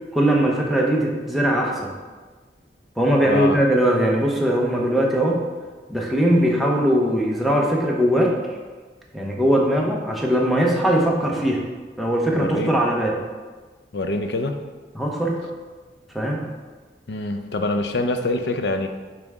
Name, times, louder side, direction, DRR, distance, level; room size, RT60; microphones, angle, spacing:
voice 1, 0.1-1.9 3.0-5.4 5.9-8.3 9.1-11.6 12.0-13.2 14.9-15.4 16.1-16.4, right 1 dB, ahead, -3 dB, 0.7 m, -20 dB
voice 2, 3.3-3.6 12.3-12.7 13.9-14.5 17.1-18.9, left 2 dB, 70° left, 6 dB, 0.6 m, -25 dB
8.8 x 3.3 x 3.6 m, 1.4 s
head